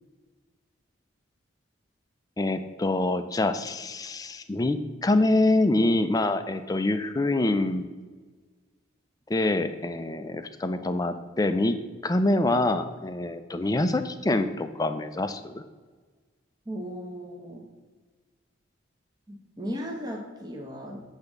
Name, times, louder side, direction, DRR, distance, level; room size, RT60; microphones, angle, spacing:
voice 1, 2.4-7.9 9.3-15.6, left 2 dB, 20° left, 9 dB, 0.4 m, -25 dB
voice 2, 16.7-17.7 19.3-21.0, equal, 20° right, 0 dB, 0.9 m, -36 dB
7.9 x 3.6 x 6.6 m, 1.4 s
head